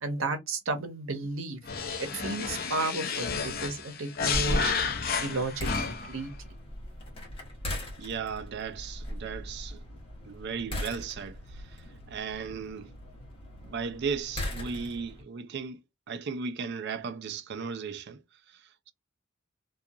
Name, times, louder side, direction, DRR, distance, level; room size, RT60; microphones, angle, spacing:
voice 1, 0.0-1.6 2.0-4.7 5.2-6.3, right 3 dB, 80° right, 0.8 m, -33 dB
sound 1, 1.6-6.2, left 5 dB, 45° left, 0.5 m, -31 dB
sound 2, 4.3-15.2, equal, 25° left, 1.0 m, -38 dB
voice 2, 8.0-9.8 10.2-11.4 12.1-12.9 13.6-15.8 16.1-18.2, right 5 dB, 55° right, 0.4 m, -36 dB
2.7 x 2.3 x 2.4 m
head